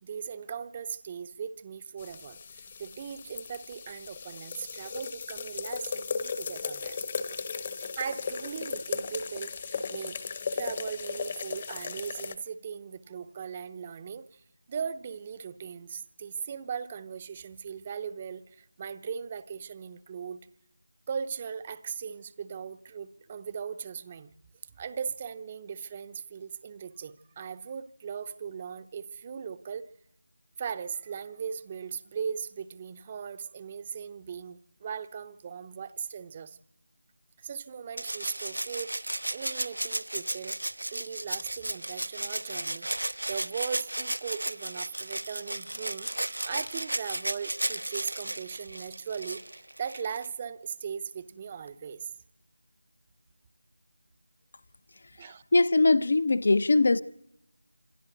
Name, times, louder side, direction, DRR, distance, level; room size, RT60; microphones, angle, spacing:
voice 1, 0.0-7.1 8.0-10.2 10.5-20.4 21.1-24.3 24.8-29.9 30.6-36.6 37.4-40.6 40.9-52.1 55.2-55.4, right 7 dB, 20° right, 0.7 m, -38 dB
sound 1, 2.0-12.3, left 5 dB, 25° left, 1.0 m, -36 dB
Rattle (instrument), 38.0-50.3 51.7-51.8, right 1 dB, 85° right, 0.9 m, -34 dB
voice 2, 55.2-57.0, left 3 dB, 50° left, 0.7 m, -22 dB
27.0 x 25.5 x 4.0 m
figure-of-eight pair, 170°, 0 cm